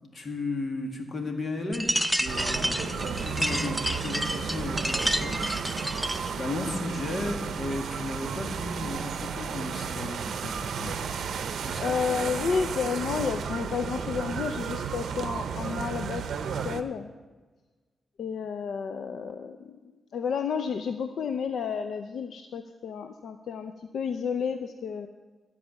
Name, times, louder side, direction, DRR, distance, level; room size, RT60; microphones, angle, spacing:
voice 1, 0.1-5.7 6.2-11.0 11.6-11.8, left 2 dB, 45° left, 3 dB, 1.9 m, -35 dB
sound 1, 1.7-6.3, equal, ahead, 0.6 m, -29 dB
sound 2, 2.2-16.8, right 6 dB, 80° right, 0.6 m, -33 dB
voice 2, 11.8-16.2 16.6-17.1 18.2-19.8 20.1-25.1, left 6 dB, 75° left, 7 dB, 0.5 m, -31 dB
13.0 x 4.9 x 8.7 m, 1.3 s
cardioid pair, 90°, 0 cm